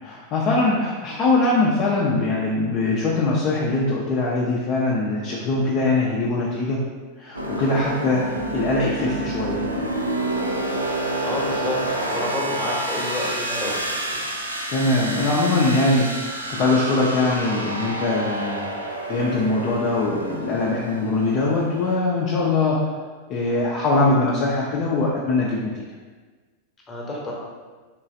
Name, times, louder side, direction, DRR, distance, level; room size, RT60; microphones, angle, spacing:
voice 1, 0.0-6.8 7.2-9.8 14.7-22.9 23.3-25.8, left 2 dB, 35° left, -4 dB, 0.5 m, -22 dB
sound 1, 7.3-21.9, right 1 dB, 85° right, 0.4 m, -29 dB
voice 2, 10.9-11.8 12.1-13.8 14.1-14.2 26.9-27.3, left 2 dB, 15° left, -3 dB, 0.9 m, -29 dB
3.7 x 3.1 x 2.6 m, 1.4 s
figure-of-eight pair, 90°, 0 cm